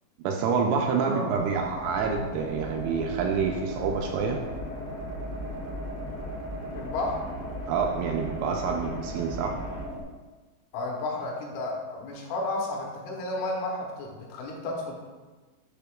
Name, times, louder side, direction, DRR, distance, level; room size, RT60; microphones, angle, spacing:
voice 1, 0.2-4.4 7.7-9.6, right 5 dB, 80° right, 2 dB, 3.0 m, -27 dB
voice 2, 1.0-1.6 6.7-7.2 10.7-14.9, left 2 dB, 75° left, -2 dB, 3.4 m, -32 dB
sound 1, 1.4-10.0, right 1 dB, 55° right, 1.5 m, -39 dB
sound 2, 1.9-9.9, left 1 dB, 55° left, 1.0 m, -39 dB
10.5 x 6.7 x 2.4 m, 1.3 s
omnidirectional pair, 5.9 m